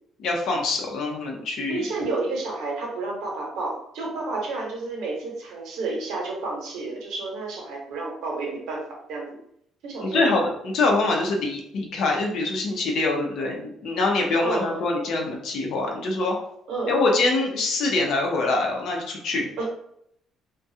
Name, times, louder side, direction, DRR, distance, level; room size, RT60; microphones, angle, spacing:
voice 1, 0.2-1.8 10.0-16.4 16.9-19.5, left 3 dB, 65° left, 1 dB, 0.6 m, -24 dB
voice 2, 1.7-8.8 9.1-9.4 9.8-10.4 14.4-14.8 16.7-17.0 19.6-19.7, right 3 dB, 80° right, -1 dB, 0.8 m, -30 dB
2.3 x 2.2 x 2.7 m, 0.72 s
cardioid pair, 135°, 0 cm